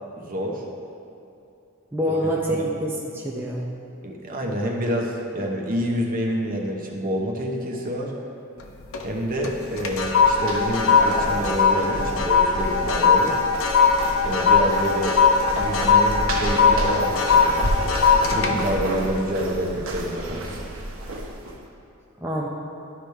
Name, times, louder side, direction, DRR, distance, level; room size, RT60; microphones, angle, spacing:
voice 1, 0.2-0.6 2.1-2.2 2.5-2.7 4.0-8.1 9.0-13.4 14.2-15.2 15.5-17.7 18.2-20.6, equal, 45° right, 0 dB, 0.9 m, -27 dB
voice 2, 1.9-3.6 22.2-22.5, equal, 10° right, -4 dB, 0.6 m, -26 dB
sound 1, 8.6-9.1 9.4-20.0 20.4-20.7, left 5 dB, 80° left, 0.7 m, -20 dB
sound 2, 9.6-21.6, right 1 dB, 80° right, 1.0 m, -31 dB
12.0 x 5.0 x 3.4 m, 2.7 s
head